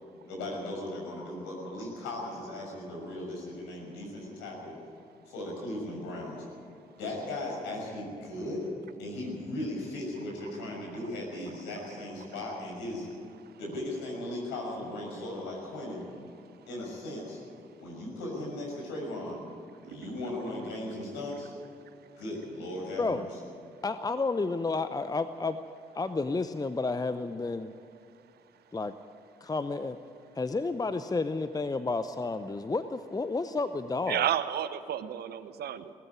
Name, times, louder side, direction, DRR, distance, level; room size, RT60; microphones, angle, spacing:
voice 1, 0.2-4.8 5.3-6.4 7.0-8.7 9.0-13.1 13.6-16.1 16.7-17.4 17.8-19.4 19.8-21.5 22.2-23.4, left 1 dB, 70° left, -1 dB, 6.4 m, -37 dB
voice 2, 23.8-25.6 25.9-27.7 28.7-28.9 29.4-30.0 30.4-34.3, left 3 dB, 20° left, 12 dB, 0.8 m, -31 dB
voice 3, 34.1-35.9, right 10 dB, 55° right, 13 dB, 1.0 m, -31 dB
19.5 x 13.5 x 9.9 m, 2.5 s
figure-of-eight pair, 40°, 19 cm